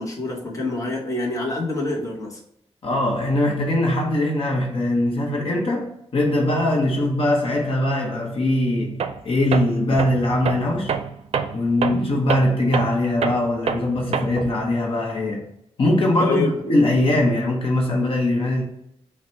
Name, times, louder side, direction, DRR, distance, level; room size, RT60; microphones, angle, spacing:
voice 1, 0.0-2.4 16.2-16.6, left 2 dB, 30° left, 1.0 m, -26 dB
voice 2, 2.8-10.9 11.5-15.4 15.8-18.6, left 1 dB, 60° left, 0.8 m, -21 dB
Tools, 9.0-9.2 9.5-14.6, right 6 dB, 75° right, 0.4 m, -27 dB
5.8 x 2.1 x 4.2 m
wide cardioid pair, 130°, 11 cm